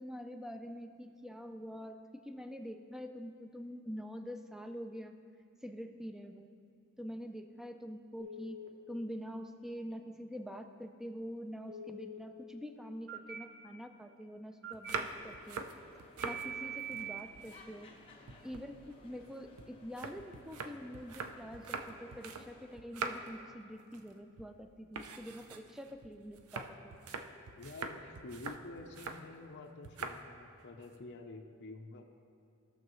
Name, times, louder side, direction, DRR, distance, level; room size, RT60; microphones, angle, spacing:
voice 1, 0.0-5.1 5.6-6.5 7.0-8.6 8.9-15.7 16.2-17.9 18.4-26.9, equal, ahead, 6 dB, 0.4 m, -45 dB
Telephone, 8.2-8.7 11.7-12.2 13.1-13.4 14.6-14.9 16.2-17.2, right 5 dB, 55° right, 0.9 m, -43 dB
sound 1, 14.7-16.5 16.8-18.0 18.3-22.5 22.8-23.4 23.8-24.1 24.4-24.5 24.9-29.2 29.8-30.2 30.6-30.9, right 4 dB, 85° right, 0.5 m, -43 dB
sound 2, 15.1-22.8, left 2 dB, 25° left, 1.0 m, -60 dB
voice 2, 27.6-32.0, left 2 dB, 55° left, 2 dB, 0.6 m, -49 dB
16.0 x 6.4 x 3.1 m, 2.4 s
head